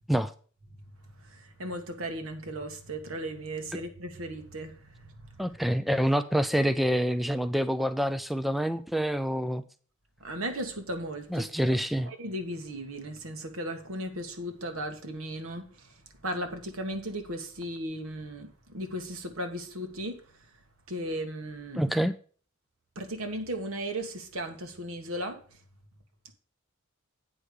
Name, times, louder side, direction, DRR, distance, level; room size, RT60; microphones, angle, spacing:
voice 1, 1.2-5.3 10.2-11.7 12.0-20.2 20.9-21.8 22.9-25.6, right 1 dB, 75° right, 1.5 m, -36 dB
voice 2, 5.4-9.6 11.3-12.1 21.8-22.1, equal, ahead, 0.3 m, -27 dB
8.8 x 5.0 x 6.5 m
head